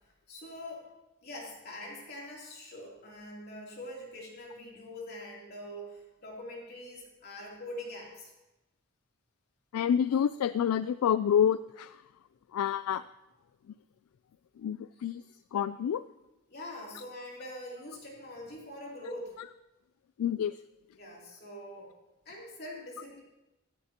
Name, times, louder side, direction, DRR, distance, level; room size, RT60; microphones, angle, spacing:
voice 1, 0.3-0.9 1.2-8.3 15.0-15.3 16.5-19.4 20.9-21.9 22.2-23.2, left 1 dB, 45° left, -3 dB, 3.1 m, -44 dB
voice 2, 9.7-12.0 12.5-13.0 14.6-15.2 15.5-16.0 20.2-20.5, left 8 dB, 85° left, 15 dB, 0.3 m, -28 dB
15.0 x 13.5 x 2.9 m, 0.98 s
head